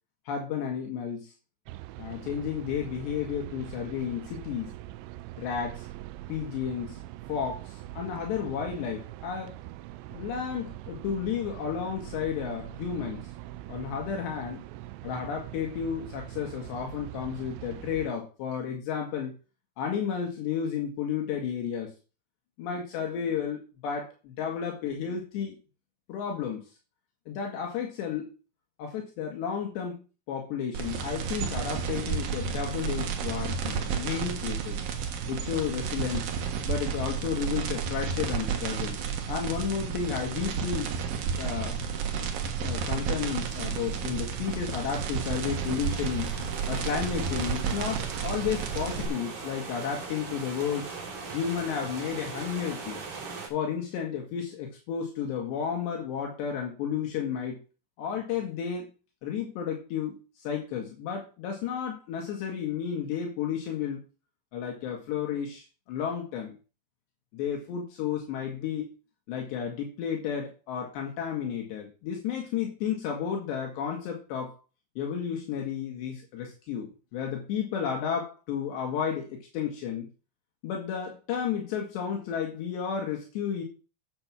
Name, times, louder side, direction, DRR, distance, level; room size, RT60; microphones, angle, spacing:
voice 1, 0.3-1.3 2.0-4.7 5.4-5.9 6.3-7.0 7.3-9.5 10.1-13.3 13.7-14.6 15.0-19.3 19.8-21.9 22.6-25.6 26.1-26.7 27.3-28.3 28.8-30.0 30.3-34.8 35.3-36.3 36.7-39.0 39.3-40.9 41.4-41.8 42.6-46.4 46.7-50.9 51.3-53.0 53.5-57.6 58.0-58.9 59.2-64.0 64.5-66.5 67.3-68.9 69.3-74.6 75.0-80.1 80.6-83.6, left 7 dB, 75° left, 1 dB, 4.0 m, -32 dB
sound 1, 1.7-18.1, right 15 dB, 85° right, 2.9 m, -42 dB
sound 2, 30.7-49.1, right 7 dB, 65° right, 2.9 m, -32 dB
sound 3, 43.4-53.5, right 4 dB, 45° right, 4.3 m, -41 dB
8.8 x 7.8 x 6.1 m, 0.32 s
omnidirectional pair, 5.1 m